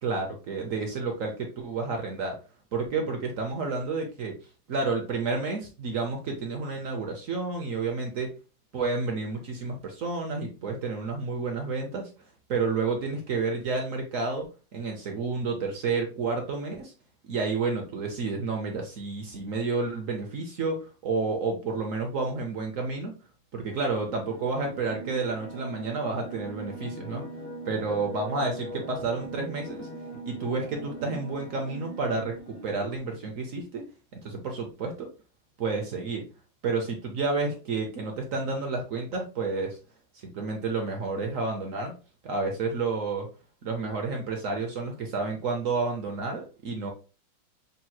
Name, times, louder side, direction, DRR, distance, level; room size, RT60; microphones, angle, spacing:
voice 1, 0.0-2.4 2.7-4.4 4.7-8.3 8.7-12.1 12.5-14.5 14.7-16.9 17.2-23.1 23.5-27.2 27.7-29.9 30.3-33.8 34.1-35.1 35.6-36.2 36.6-39.8 40.2-41.9 42.2-43.3 43.6-46.9, right 4 dB, 60° right, 2 dB, 0.8 m, -30 dB
sound 1, 23.8-33.0, right 2 dB, 45° left, 0.6 m, -41 dB
6.6 x 3.0 x 2.3 m, 0.34 s
omnidirectional pair, 2.2 m